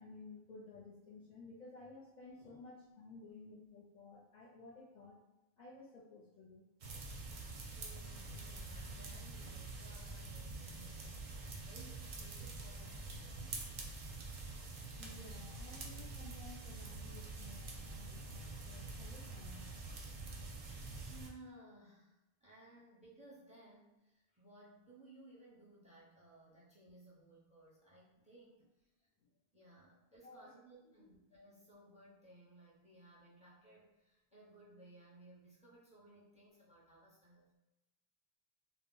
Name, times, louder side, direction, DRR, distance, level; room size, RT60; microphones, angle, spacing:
voice 1, 0.0-5.2 5.6-6.7 15.0-19.7 29.2-29.3 30.2-30.5, left 3 dB, 55° left, -6 dB, 0.6 m, -55 dB
sound 1, 6.8-21.3, right 3 dB, 55° right, 0.5 m, -46 dB
voice 2, 7.6-11.2 11.6-13.7 20.4-20.6 21.0-29.1 29.5-37.6, right 1 dB, 10° right, -6 dB, 0.5 m, -60 dB
2.1 x 2.0 x 3.7 m, 0.99 s
omnidirectional pair, 1.1 m